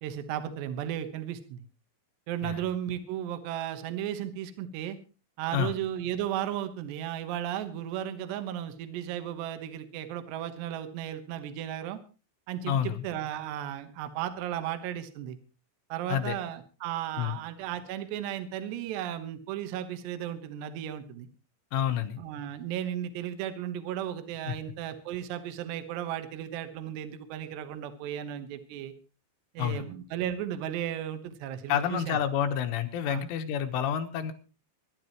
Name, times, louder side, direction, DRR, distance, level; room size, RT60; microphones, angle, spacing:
voice 1, 0.0-1.6 2.3-5.0 5.4-12.0 12.5-15.4 15.9-21.3 22.2-28.9 29.5-32.2 33.1-33.2, right 11 dB, 75° right, 9 dB, 3.2 m, -35 dB
voice 2, 12.7-13.1 16.1-16.4 17.2-17.4 21.7-22.2 24.5-24.6 29.6-29.9 31.7-34.3, left 9 dB, 85° left, 7 dB, 3.8 m, -29 dB
24.5 x 11.5 x 3.1 m, 0.35 s
omnidirectional pair, 5.5 m